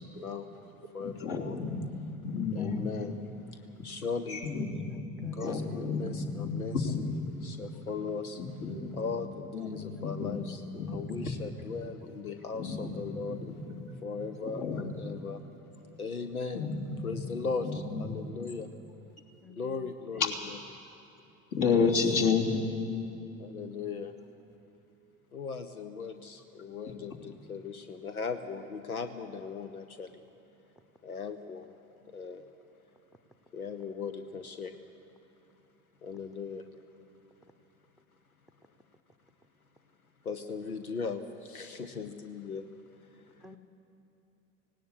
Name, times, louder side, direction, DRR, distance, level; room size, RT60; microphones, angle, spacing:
voice 1, 0.0-1.6 2.5-3.2 3.5-4.5 5.3-7.1 7.4-13.4 14.0-15.4 16.0-16.7 17.0-18.7 19.6-20.6 21.7-22.1 23.4-24.2 25.3-30.2 31.0-31.8 32.0-32.5 33.5-34.8 36.0-36.7 40.2-43.6, left 5 dB, 85° left, 9 dB, 0.8 m, -38 dB
voice 2, 1.0-1.8 2.2-2.9 4.3-4.9 5.2-7.2 8.6-9.0 9.5-10.4 10.7-11.2 12.6-13.0 13.3-13.5 14.5-15.0 16.5-17.1 17.7-18.0 21.5-22.6, left 5 dB, 50° left, -1 dB, 3.1 m, -31 dB
voice 3, 4.9-5.7 6.2-6.3 8.9-9.0 9.8-10.0 19.4-19.9 43.4-43.6, left 3 dB, ahead, 8 dB, 0.8 m, -53 dB
18.0 x 17.5 x 8.4 m, 2.7 s
figure-of-eight pair, 65°, 42 cm